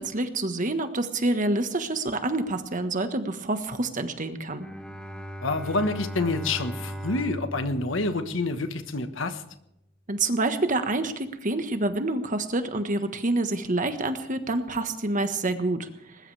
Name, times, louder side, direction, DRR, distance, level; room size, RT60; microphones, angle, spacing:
voice 1, 0.0-4.6 10.1-15.9, right 2 dB, 40° right, 8 dB, 1.4 m, -27 dB
Bowed string instrument, 4.6-8.9, equal, 5° left, 1.7 m, -38 dB
voice 2, 5.4-9.4, left 2 dB, 75° left, 8 dB, 1.5 m, -28 dB
20.5 x 20.5 x 3.4 m, 0.78 s
head